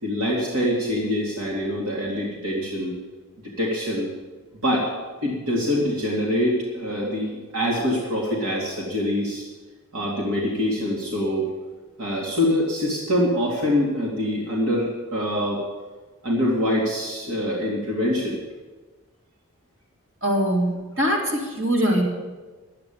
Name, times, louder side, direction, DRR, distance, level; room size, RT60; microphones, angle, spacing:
voice 1, 0.0-3.0 3.4-4.1 4.6-4.9 5.2-9.5 9.9-11.5 12.0-15.6 16.2-18.4, left 1 dB, 80° right, -4 dB, 2.7 m, -24 dB
voice 2, 20.2-20.7 21.0-22.0, equal, 55° right, -3 dB, 3.8 m, -22 dB
12.0 x 8.6 x 8.8 m, 1.3 s
head